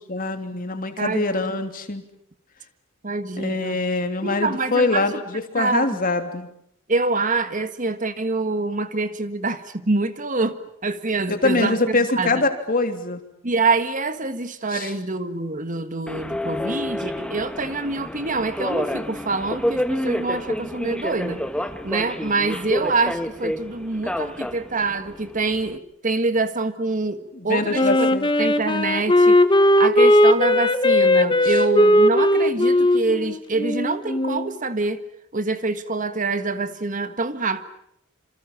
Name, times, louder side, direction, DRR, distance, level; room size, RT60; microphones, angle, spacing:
voice 1, 0.1-2.0 3.4-6.5 11.3-13.2 14.7-14.9 27.4-28.3 31.4-31.5, left 3 dB, 45° left, 7 dB, 3.1 m, -24 dB
voice 2, 3.0-3.8 4.2-5.2 5.5-5.9 6.9-12.4 13.4-21.4 21.8-28.1 28.4-35.0 35.3-37.6, right 3 dB, 40° right, 11 dB, 1.6 m, -25 dB
Subway metro underground, 16.1-25.8, equal, 5° left, 1.4 m, -29 dB
Wind instrument woodwind instrument, 27.7-34.5, left 1 dB, 25° left, 1.5 m, -17 dB
27.5 x 27.0 x 7.4 m, 0.75 s
head